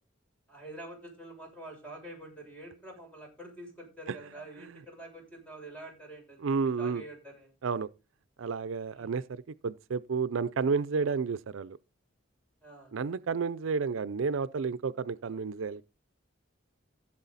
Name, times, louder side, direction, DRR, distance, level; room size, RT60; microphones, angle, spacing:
voice 1, 0.5-7.5 8.9-9.1 12.6-12.9, right 1 dB, 5° left, 6.8 m, -47 dB
voice 2, 6.4-7.0 7.6-7.9 8.4-11.8 12.9-15.8, right 5 dB, 80° right, 0.5 m, -31 dB
15.5 x 7.6 x 4.0 m
head